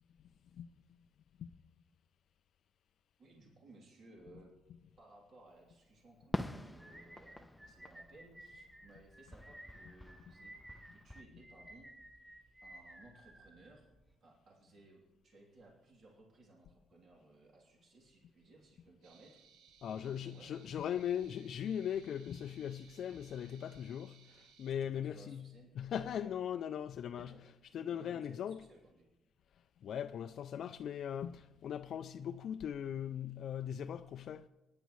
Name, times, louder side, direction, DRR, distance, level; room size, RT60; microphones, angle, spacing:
voice 1, 3.2-4.5 5.0-10.5 10.9-11.9 12.6-13.9 14.2-19.4 19.9-20.7 24.8-25.7 26.1-26.3 27.2-27.4 27.9-29.1, right 2 dB, 60° right, 3.0 m, -60 dB
Fireworks, 6.3-9.0 9.3-11.2, left 1 dB, 5° left, 0.5 m, -44 dB
sound 1, 6.8-14.1, right 1 dB, 10° right, 5.2 m, -56 dB
sound 2, 19.0-24.7, right 7 dB, 85° right, 0.9 m, -64 dB
voice 2, 19.8-25.4 25.8-27.3 27.7-28.6 29.8-34.5, left 9 dB, 65° left, 0.3 m, -39 dB
19.5 x 10.5 x 3.1 m
cardioid pair, 90°, 0 cm